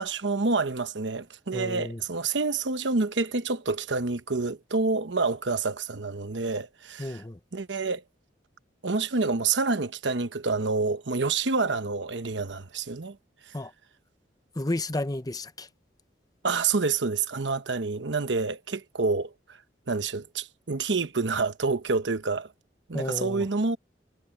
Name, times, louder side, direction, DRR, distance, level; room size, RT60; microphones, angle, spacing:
voice 1, 0.0-7.2 7.5-8.0 8.8-13.2 13.5-13.6 16.4-19.3 19.9-22.5 22.9-23.8, right 4 dB, 75° right, 1.1 m, -28 dB
voice 2, 1.5-2.0 7.0-7.4 13.5-13.7 14.6-15.7 22.9-23.5, left 1 dB, 20° left, 0.9 m, -32 dB
head